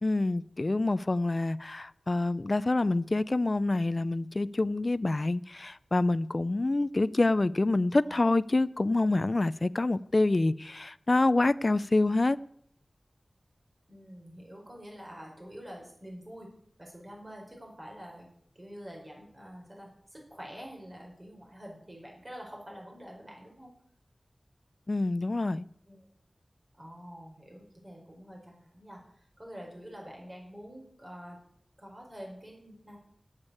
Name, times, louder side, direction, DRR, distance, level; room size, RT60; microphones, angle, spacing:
voice 1, 0.0-12.4 24.9-25.7, left 2 dB, 45° left, 0.4 m, -27 dB
voice 2, 13.9-16.5 16.8-18.3 18.5-23.7 25.9-26.1 26.8-31.4 31.8-33.0, equal, 30° right, 5.1 m, -47 dB
8.7 x 8.2 x 8.4 m
wide cardioid pair, 60°, 0 cm